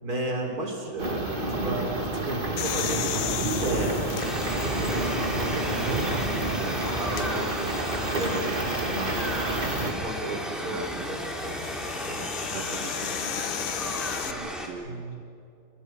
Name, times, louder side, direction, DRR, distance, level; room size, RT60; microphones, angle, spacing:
voice 1, 0.0-4.0 4.4-7.8 8.1-10.8 11.1-11.7 12.0-12.2 14.8-15.2, right 2 dB, 20° right, 2 dB, 4.0 m, -34 dB
sound 1, 1.0-9.9, right 2 dB, 35° right, 0.8 m, -29 dB
sound 2, 2.6-5.5 6.0-6.1 7.0-7.3 9.4-14.3, left 11 dB, 85° left, 1.8 m, -35 dB
sound 3, 4.2-14.7, equal, ahead, 2.7 m, -34 dB
voice 2, 10.7-11.1 12.5-13.4 13.6-13.9 14.2-15.3, right 9 dB, 85° right, 9 dB, 1.9 m, -42 dB
28.0 x 25.0 x 6.3 m, 2.6 s
omnidirectional pair, 5.2 m